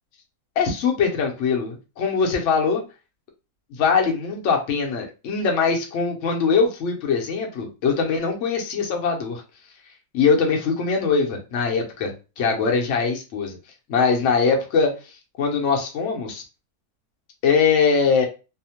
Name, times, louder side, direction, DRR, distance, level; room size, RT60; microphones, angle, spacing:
voice 1, 0.6-2.8 3.7-9.4 10.1-13.6 13.9-14.9 15.4-16.4 17.4-18.3, left 5 dB, 60° left, 1 dB, 0.8 m, -22 dB
2.7 x 2.1 x 2.8 m, 0.31 s
omnidirectional pair, 1.7 m